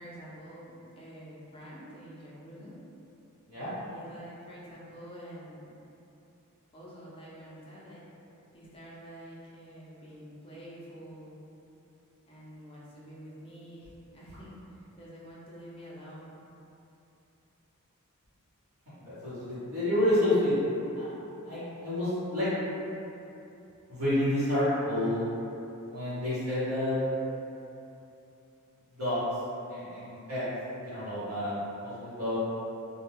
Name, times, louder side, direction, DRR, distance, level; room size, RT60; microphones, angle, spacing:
voice 1, 0.0-2.8 3.9-5.7 6.7-8.0 8.5-11.3 12.3-16.4, equal, 25° left, -7 dB, 0.5 m, -47 dB
voice 2, 19.0-20.6 20.9-21.1 21.4-22.5 23.9-25.2 25.9-27.0 28.9-29.2 29.7-32.4, left 1 dB, 75° right, -13 dB, 1.0 m, -29 dB
2.2 x 2.2 x 3.3 m, 2.8 s
head